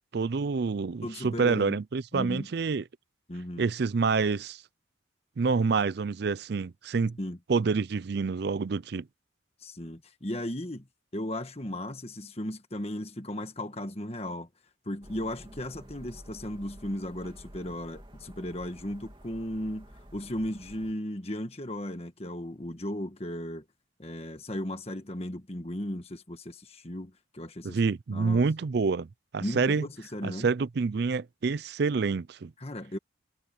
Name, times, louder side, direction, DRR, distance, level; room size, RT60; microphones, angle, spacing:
voice 1, 0.1-2.8 3.6-4.6 5.4-7.2 7.5-9.1 27.6-29.8 30.2-32.5, right 4 dB, 55° right, 0.4 m, -27 dB
voice 2, 1.0-1.8 2.1-2.5 3.3-3.6 7.2-7.4 9.6-10.9 11.1-14.5 14.8-19.9 20.1-23.6 24.0-27.8 28.1-28.4 29.4-30.5 32.6-33.0, left 1 dB, 30° left, 1.5 m, -36 dB
sound 1, 15.0-20.9, equal, 25° right, 2.8 m, -50 dB
head